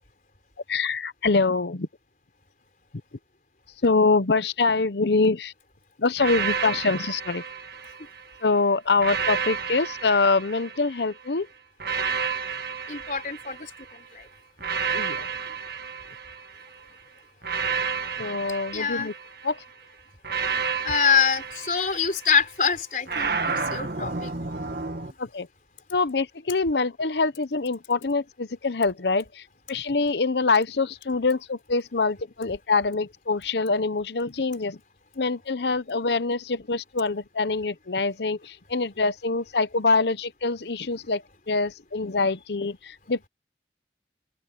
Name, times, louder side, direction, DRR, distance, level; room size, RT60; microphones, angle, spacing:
voice 1, 0.7-1.9 3.8-5.5 6.0-7.4 8.4-11.5 14.9-15.3 18.2-19.1 19.4-19.6 25.2-25.5 25.9-29.2 29.7-34.8 35.2-43.3, left 3 dB, 75° left, 0.8 m, -25 dB
sound 1, 6.2-8.3 9.0-11.1 11.8-14.0 14.6-16.8 17.4-19.6 20.2-22.4 23.1-25.1, right 5 dB, 60° right, 1.7 m, -31 dB
voice 2, 12.9-13.7 14.1-14.3 18.7-19.1 20.8-24.3, left 6 dB, 50° left, 4.3 m, -25 dB
open air
head